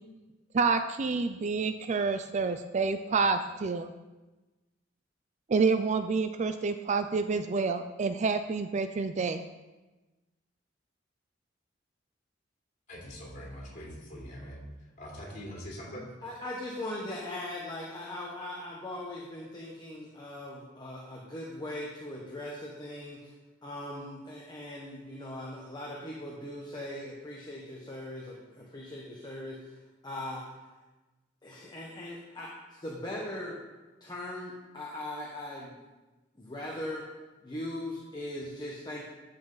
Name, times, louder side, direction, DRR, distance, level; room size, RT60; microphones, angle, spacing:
voice 1, 0.5-3.9 5.5-9.4, right 4 dB, 40° right, 10 dB, 0.4 m, -28 dB
voice 2, 12.9-14.6 15.0-16.1, equal, 40° left, -4 dB, 3.0 m, -43 dB
voice 3, 16.2-23.3 23.6-30.6 31.4-32.5 32.8-33.6 34.0-35.8 36.4-37.0 37.4-39.1, left 1 dB, 25° left, -4 dB, 1.2 m, -40 dB
13.0 x 5.6 x 4.0 m, 1.1 s
head